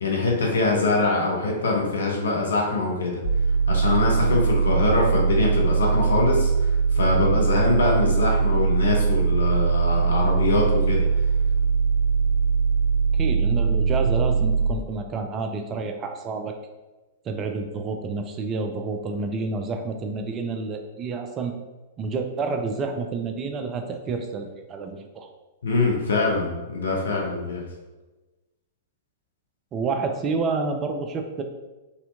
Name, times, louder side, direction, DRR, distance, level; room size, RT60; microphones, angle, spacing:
voice 1, 0.0-3.2 3.7-6.5 6.9-11.1 25.6-27.6, left 3 dB, 65° left, -1 dB, 0.8 m, -23 dB
sound 1, 3.2-14.7, right 5 dB, 85° right, 0.8 m, -21 dB
voice 2, 13.1-16.6 17.3-21.5 22.0-25.3 29.7-31.4, right 4 dB, 25° right, 5 dB, 0.3 m, -29 dB
4.1 x 2.7 x 2.5 m, 1.1 s
figure-of-eight pair, 105°, 0 cm